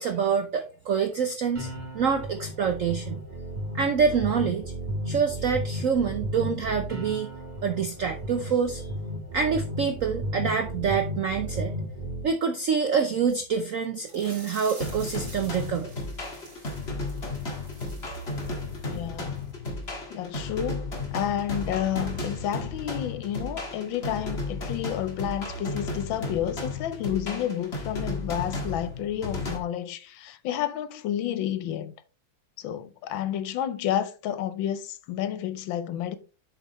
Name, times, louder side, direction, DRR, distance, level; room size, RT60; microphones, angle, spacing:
voice 1, 0.0-1.7 1.9-3.2 3.7-4.7 5.1-7.3 7.6-8.9 9.3-11.7 12.2-15.9, right 6 dB, 70° right, 0.7 m, -26 dB
sound 1, 1.5-12.2, equal, 25° right, 1.5 m, -34 dB
sound 2, 14.0-19.1 19.4-19.5 19.9-20.0, right 2 dB, 45° right, 3.5 m, -49 dB
sound 3, 14.8-29.6, left 2 dB, 30° left, 1.8 m, -34 dB
voice 2, 18.8-19.4 20.1-31.9 32.6-36.2, left 10 dB, 75° left, 1.4 m, -30 dB
7.5 x 6.8 x 3.1 m
omnidirectional pair, 2.2 m